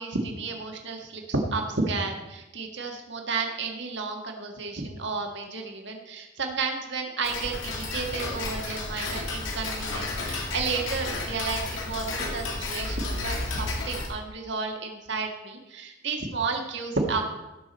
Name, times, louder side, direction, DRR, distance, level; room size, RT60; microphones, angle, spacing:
voice 1, 0.0-17.2, right 4 dB, 65° right, 3 dB, 1.6 m, -32 dB
Tick-tock, 7.2-14.1, left 2 dB, 85° left, 2.1 m, -32 dB
17.5 x 5.8 x 4.3 m, 1.0 s
head